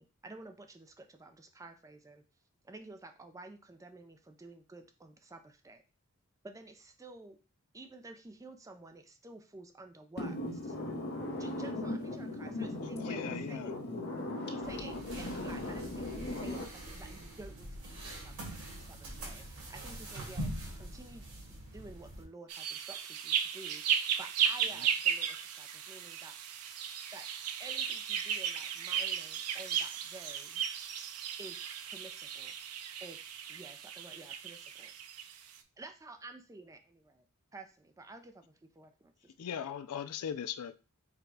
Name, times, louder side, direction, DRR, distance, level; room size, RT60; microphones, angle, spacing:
voice 1, 0.0-2.2 2.6-5.8 6.4-7.4 7.7-10.3 11.4-14.0 14.5-18.5 18.8-20.5 20.8-21.3 21.7-26.7 27.1-27.3 27.6-30.6 31.4-32.5 33.0-33.2 33.5-34.9 35.8-37.3 37.5-39.5, right 2 dB, 15° right, 0.4 m, -51 dB
voice 2, 10.2-16.7, left 1 dB, 50° left, 0.8 m, -38 dB
voice 3, 13.0-13.7 39.4-40.7, left 8 dB, 85° left, 0.4 m, -39 dB
sound 1, 14.6-22.2, right 1 dB, 70° right, 1.8 m, -44 dB
sound 2, 22.5-35.4, right 8 dB, 90° right, 0.6 m, -35 dB
4.9 x 2.2 x 4.7 m
head